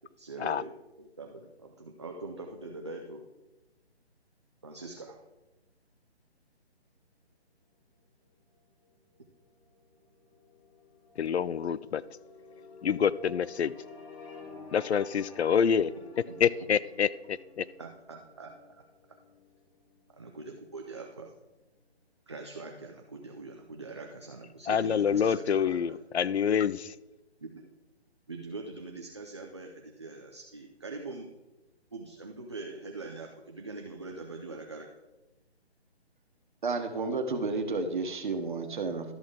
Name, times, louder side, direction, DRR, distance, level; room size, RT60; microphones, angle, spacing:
voice 1, 0.2-3.3 4.6-5.2 16.3-16.7 17.8-18.9 20.2-21.3 22.3-26.6 27.4-27.7 28.3-31.4 31.9-34.9, right 3 dB, 25° right, 1 dB, 0.5 m, -43 dB
sound 1, 8.6-21.2, left 3 dB, 30° left, 1.8 m, -52 dB
voice 2, 11.2-12.0 12.8-13.7 14.7-15.9 16.4-17.7 24.7-26.9, left 7 dB, 75° left, 18 dB, 0.5 m, -27 dB
voice 3, 36.6-39.1, right 3 dB, 45° right, 6 dB, 1.2 m, -31 dB
13.0 x 6.0 x 3.7 m, 1.0 s
figure-of-eight pair, 160°, 33 cm